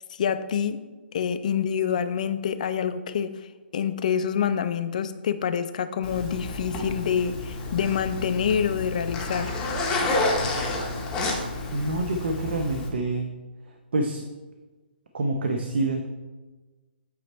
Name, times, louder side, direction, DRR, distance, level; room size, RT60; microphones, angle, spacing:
voice 1, 0.1-0.8 1.1-3.3 3.7-9.6, left 8 dB, 45° left, 11 dB, 0.4 m, -26 dB
Zipper (clothing), 6.0-12.9, left 2 dB, 15° left, 0.7 m, -29 dB
voice 2, 11.7-13.3 13.7-14.3 15.1-16.1, right 2 dB, 70° right, 4 dB, 0.7 m, -27 dB
8.5 x 3.1 x 4.3 m, 1.2 s
hypercardioid pair, 170°, 6 cm